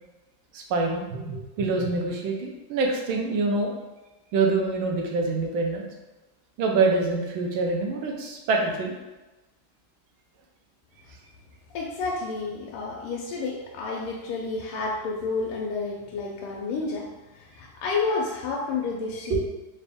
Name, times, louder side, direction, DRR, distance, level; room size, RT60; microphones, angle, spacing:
voice 1, 0.5-3.7 4.3-5.9 6.6-8.9 19.3-19.4, right 3 dB, 75° right, 1 dB, 1.4 m, -25 dB
voice 2, 11.7-17.1 17.3-19.4, left 4 dB, 85° left, -2 dB, 1.5 m, -30 dB
4.0 x 2.7 x 3.4 m, 1.1 s
omnidirectional pair, 2.4 m